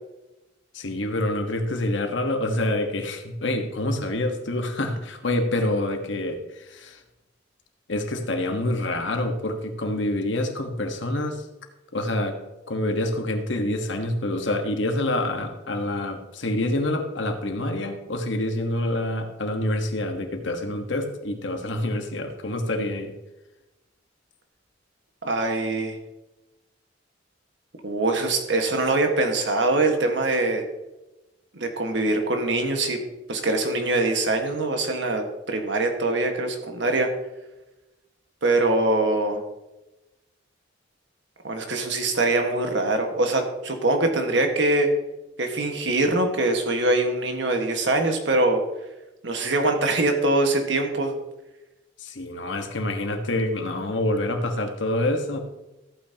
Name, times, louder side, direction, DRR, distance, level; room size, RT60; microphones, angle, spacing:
voice 1, 0.7-7.0 7.9-11.5 11.9-12.4 12.7-23.1 52.0-55.4, left 1 dB, 70° left, 5 dB, 1.4 m, -27 dB
voice 2, 25.2-26.0 27.8-30.6 31.5-33.0 33.3-37.1 38.4-39.4 41.4-44.9 45.4-48.6 49.2-51.1, right 2 dB, 65° right, 4 dB, 1.6 m, -23 dB
14.5 x 8.8 x 2.9 m, 1.0 s
head